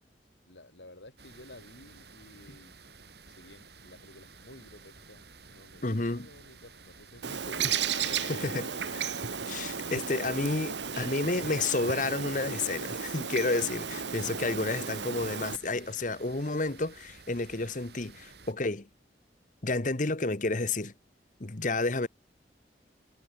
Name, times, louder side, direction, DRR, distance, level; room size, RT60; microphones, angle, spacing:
voice 1, 0.5-2.7 3.3-9.0, left 1 dB, 80° left, 6.8 m, -52 dB
sound 1, 1.2-18.5, right 4 dB, 65° right, 6.9 m, -53 dB
voice 2, 5.8-6.3 8.3-8.7 9.5-18.9 19.6-20.9 21.4-22.1, left 3 dB, 45° left, 1.3 m, -30 dB
Bird, 7.2-15.6, right 7 dB, 85° right, 1.4 m, -34 dB
head